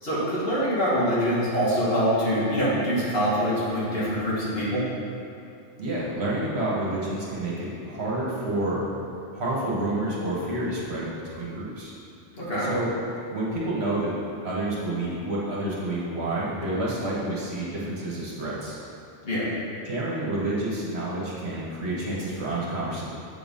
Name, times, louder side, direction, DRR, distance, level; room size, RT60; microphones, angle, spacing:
voice 1, 0.0-4.8 12.4-12.7 19.2-19.5, equal, 50° left, -9 dB, 2.0 m, -24 dB
voice 2, 5.8-8.9 9.3-11.9 12.6-12.9 13.3-14.1 14.4-18.8 19.8-23.0, right 1 dB, 60° right, -6 dB, 1.5 m, -29 dB
7.1 x 3.9 x 5.3 m, 2.5 s
omnidirectional pair, 1.2 m